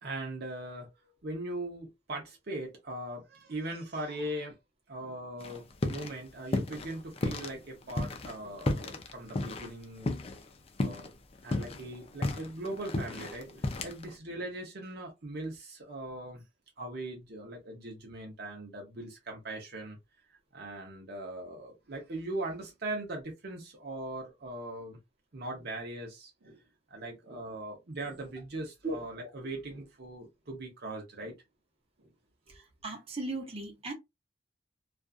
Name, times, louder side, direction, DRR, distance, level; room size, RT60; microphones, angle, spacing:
voice 1, 0.0-1.0 1.2-4.6 4.9-10.1 10.8-11.1 11.4-16.4 16.8-20.0 20.3-25.0 25.3-26.6 26.9-31.4 32.0-32.1, right 1 dB, 60° right, 0.7 m, -40 dB
sound 1, 5.4-6.2 6.4-7.5 7.9-10.5 10.8-11.1 11.4-14.1, left 2 dB, 35° left, 0.4 m, -33 dB
voice 2, 32.8-33.9, right 2 dB, 35° right, 0.8 m, -36 dB
2.5 x 2.4 x 2.3 m
head